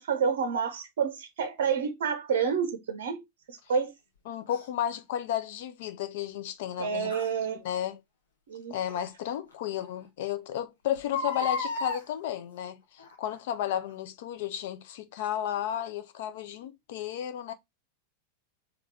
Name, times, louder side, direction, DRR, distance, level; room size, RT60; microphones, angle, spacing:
voice 1, 0.0-3.2 3.5-3.9 6.8-7.6 8.5-8.7, right 6 dB, 60° right, 0.6 m, -29 dB
voice 2, 4.3-7.1 7.5-8.0 8.7-17.5, left 10 dB, 50° left, 0.6 m, -33 dB
Crying sobbing, 4.5-4.6 7.1-7.3 8.9-9.0 9.5-9.6 9.8-9.9 11.0-12.0 13.0-13.3 13.9-14.0, left 4 dB, 70° left, 1.1 m, -33 dB
3.5 x 3.5 x 3.2 m
figure-of-eight pair, 90°, 0 cm